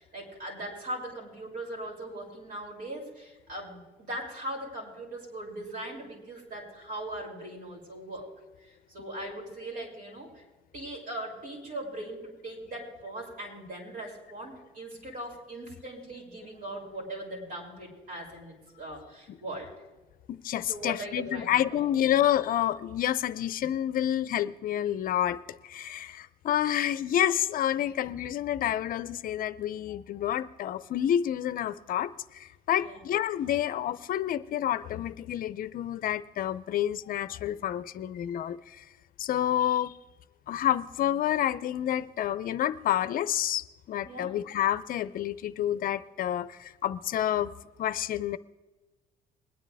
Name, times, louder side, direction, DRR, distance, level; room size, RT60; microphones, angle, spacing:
voice 1, 0.0-8.3 8.6-10.4 10.7-19.7 20.7-21.9 32.8-33.0 44.1-44.3, right 1 dB, 55° right, 5.7 m, -40 dB
voice 2, 20.3-38.8 39.2-40.0 40.5-47.5 47.8-48.4, left 11 dB, 55° left, 0.6 m, -29 dB
21.5 x 9.9 x 3.4 m
cardioid pair, 110°, 17 cm